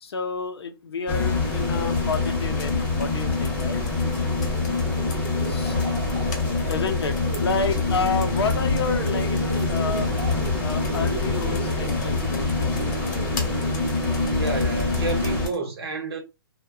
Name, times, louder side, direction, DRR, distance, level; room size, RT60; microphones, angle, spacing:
voice 1, 0.0-3.9 5.5-5.8 6.7-10.1 10.6-13.1, left 4 dB, 85° left, 0.6 m, -30 dB
sound 1, 1.1-15.5, left 3 dB, 10° left, 0.8 m, -25 dB
Computer keyboard, 2.1-15.6, left 3 dB, 45° left, 0.9 m, -40 dB
sound 2, 4.1-14.0, right 6 dB, 40° right, 0.5 m, -37 dB
voice 2, 14.3-16.2, right 3 dB, 85° right, 0.9 m, -30 dB
2.7 x 2.2 x 2.3 m
hypercardioid pair, 155°, 13 cm